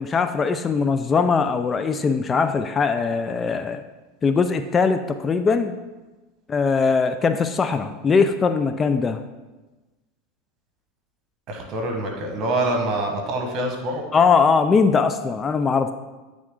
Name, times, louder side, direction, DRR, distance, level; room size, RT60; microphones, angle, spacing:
voice 1, 0.0-3.8 4.2-5.8 6.5-9.2 14.1-15.9, left 5 dB, 25° left, 9 dB, 0.3 m, -20 dB
voice 2, 11.5-14.0, right 1 dB, 45° right, 3 dB, 1.4 m, -25 dB
8.7 x 3.7 x 3.7 m, 1.2 s
hypercardioid pair, 105°, 0 cm